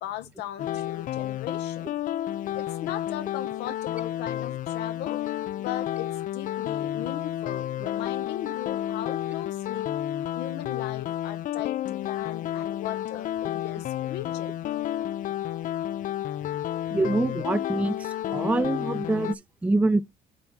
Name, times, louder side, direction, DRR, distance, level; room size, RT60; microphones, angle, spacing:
voice 1, 0.0-1.9 2.5-5.2 5.6-9.9 10.4-14.6, left 12 dB, 80° left, 0.7 m, -38 dB
Pixel Piano Adventure Melody Loop, 0.6-19.3, left 12 dB, 50° left, 0.4 m, -31 dB
voice 2, 16.9-20.0, right 2 dB, 10° right, 0.4 m, -25 dB
8.7 x 2.9 x 5.8 m
cardioid pair, 110°, 17 cm